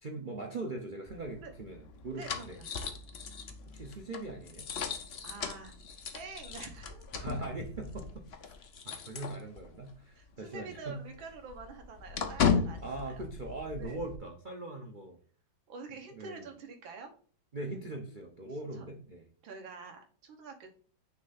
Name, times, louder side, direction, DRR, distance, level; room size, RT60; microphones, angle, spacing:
voice 1, 0.0-2.6 3.7-4.7 7.1-8.5 8.8-11.0 12.8-15.2 16.1-16.4 17.5-19.3, right 2 dB, 60° right, 2 dB, 0.5 m, -41 dB
sound 1, 1.1-9.9 10.2-10.3 10.7-14.2, left 6 dB, 70° left, 0.6 m, -36 dB
voice 2, 2.1-2.7 5.2-5.7 6.1-7.1 10.2-13.3 13.8-14.0 15.7-17.1 18.7-18.9 19.4-20.7, right 4 dB, 85° right, 4 dB, 2.0 m, -47 dB
6.1 x 3.3 x 5.6 m, 0.43 s
omnidirectional pair, 2.1 m